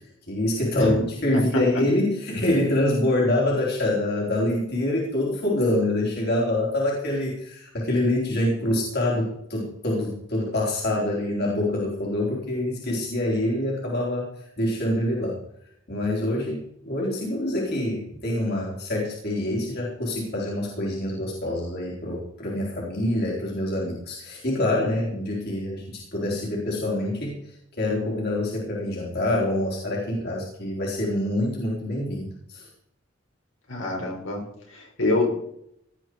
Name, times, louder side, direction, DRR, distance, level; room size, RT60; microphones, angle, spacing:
voice 1, 0.3-15.4 15.9-32.7, left 1 dB, 55° left, -3 dB, 3.7 m, -26 dB
voice 2, 33.7-34.4 34.7-35.3, left 2 dB, 75° left, 0 dB, 5.3 m, -25 dB
18.0 x 11.0 x 4.6 m, 0.74 s
head